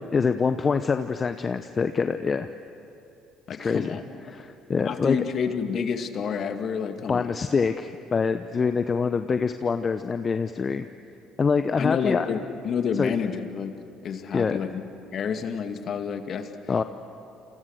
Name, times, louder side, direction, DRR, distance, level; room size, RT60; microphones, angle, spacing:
voice 1, 0.1-2.5 3.6-4.0 4.3-5.2 7.1-10.9 11.4-12.3 12.9-13.1 14.3-14.6 16.7-16.8, left 5 dB, 35° left, 9 dB, 0.9 m, -25 dB
voice 2, 3.5-4.0 4.9-7.3 11.8-13.7 14.0-14.8 15.1-16.5, left 6 dB, 50° left, 7 dB, 2.1 m, -29 dB
28.5 x 28.5 x 6.5 m, 2.7 s
hypercardioid pair, 60°, 0 cm